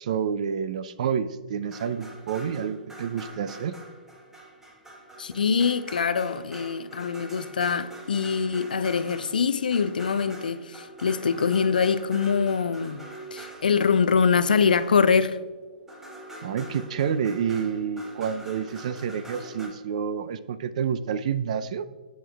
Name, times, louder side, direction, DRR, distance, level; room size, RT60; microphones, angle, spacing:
voice 1, 0.0-3.7 16.4-21.9, right 7 dB, 50° right, 0.4 m, -29 dB
sound 1, 1.6-15.4 15.9-19.7, right 2 dB, 5° right, 1.1 m, -44 dB
voice 2, 5.2-13.0 13.3-15.4, left 6 dB, 65° left, 0.4 m, -24 dB
10.0 x 7.7 x 2.3 m
figure-of-eight pair, 120°, 5 cm